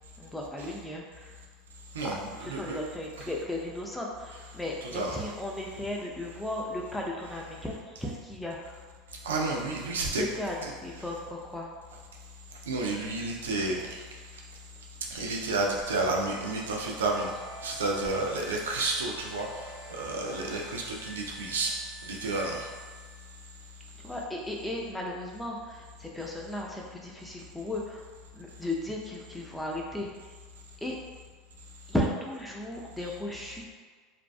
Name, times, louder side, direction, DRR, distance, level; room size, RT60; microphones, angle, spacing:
voice 1, 0.2-1.4 2.4-8.9 10.1-11.7 20.2-20.5 24.0-28.1 28.3-30.1 30.8-31.0 31.9-33.6, left 1 dB, 5° left, -2 dB, 0.5 m, -35 dB
voice 2, 1.9-2.8 3.2-3.3 4.8-5.3 9.2-10.2 10.6-10.7 11.0-11.1 12.7-14.1 15.1-17.3 17.6-22.7 33.0-33.1, right 2 dB, 85° right, -1 dB, 0.4 m, -31 dB
sound 1, 15.8-23.5, left 1 dB, 60° left, 0.6 m, -47 dB
2.6 x 2.1 x 2.4 m, 1.5 s
hypercardioid pair, 85°, 0 cm